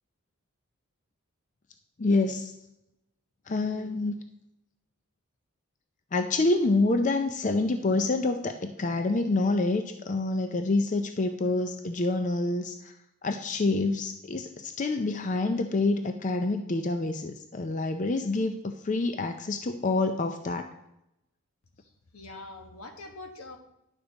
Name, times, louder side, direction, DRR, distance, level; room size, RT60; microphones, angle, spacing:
voice 1, 2.0-2.5 3.5-4.1 6.1-12.9 13.2-20.7, left 2 dB, 35° left, 7 dB, 0.4 m, -27 dB
voice 2, 21.8-23.6, left 2 dB, 85° left, 4 dB, 1.3 m, -44 dB
10.5 x 6.8 x 4.0 m, 0.86 s
head